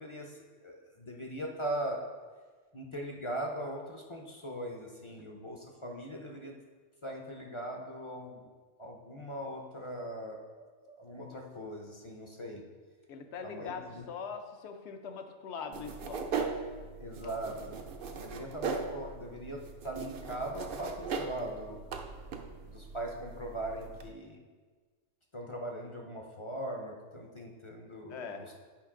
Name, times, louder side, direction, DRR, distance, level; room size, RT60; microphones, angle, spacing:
voice 1, 0.0-2.0 2.7-6.6 7.0-8.5 8.8-12.6 13.4-14.0 17.0-17.8 18.1-21.8 22.7-24.4 25.3-28.6, right 1 dB, 35° left, 1 dB, 0.6 m, -40 dB
voice 2, 13.1-16.3 17.2-17.4 28.1-28.5, left 5 dB, 65° left, 6 dB, 0.9 m, -42 dB
sound 1, 15.7-24.1, right 5 dB, 55° right, 0.7 m, -39 dB
8.9 x 5.2 x 3.7 m, 1.4 s
omnidirectional pair, 1.3 m